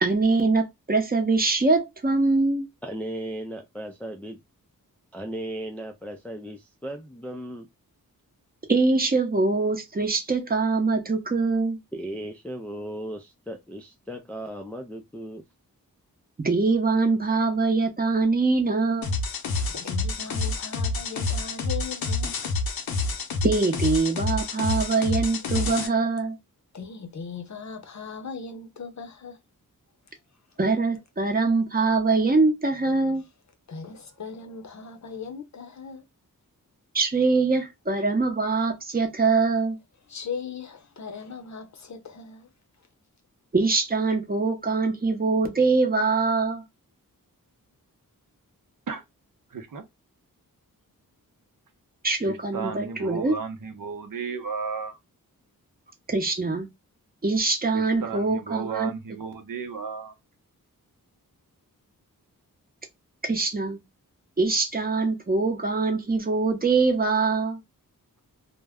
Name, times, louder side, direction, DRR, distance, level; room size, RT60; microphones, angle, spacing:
voice 1, 0.0-2.7 8.7-11.8 16.4-19.1 23.4-26.4 30.6-33.2 36.9-39.8 43.5-46.6 52.0-53.3 56.1-56.7 57.2-58.9 63.2-63.8 64.4-67.6, right 3 dB, 25° right, 0.7 m, -23 dB
voice 2, 2.8-4.4 5.1-7.7 11.9-15.4, right 1 dB, 5° left, 0.3 m, -36 dB
sound 1, 19.0-25.9, left 3 dB, 90° left, 0.6 m, -28 dB
voice 3, 19.5-22.3 26.7-29.4 33.7-36.0 40.1-42.5, left 5 dB, 55° left, 0.6 m, -38 dB
voice 4, 49.5-49.8 52.2-55.0 57.7-60.1, right 5 dB, 70° right, 0.7 m, -34 dB
2.2 x 2.0 x 3.4 m
wide cardioid pair, 80°, 35 cm